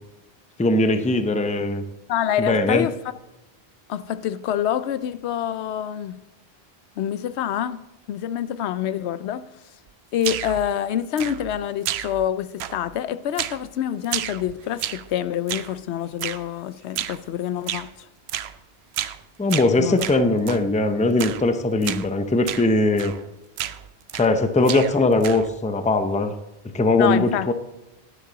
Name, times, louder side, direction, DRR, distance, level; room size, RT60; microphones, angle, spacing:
voice 1, 0.6-1.8 2.4-2.9 19.4-23.1 24.1-26.3 26.7-27.5, left 2 dB, 10° left, 0.5 m, -20 dB
voice 2, 2.1-2.9 3.9-6.2 7.0-7.8 8.1-9.5 10.1-17.9 19.8-20.1 27.0-27.5, left 10 dB, 85° left, 0.8 m, -26 dB
sound 1, 10.2-10.7 11.2-11.6 11.8-12.3 12.6-13.0 13.4-13.7 14.0-15.1 15.5-15.8 16.2-16.4 16.9-17.2 17.7-17.9 18.3-18.6 18.9-19.2 19.5-20.7 21.2-21.5 21.8-22.1 22.5-22.7 23.0-23.3 23.6-24.4 24.6-25.5, right 11 dB, 80° right, 0.8 m, -31 dB
10.5 x 9.4 x 4.0 m
omnidirectional pair, 1.1 m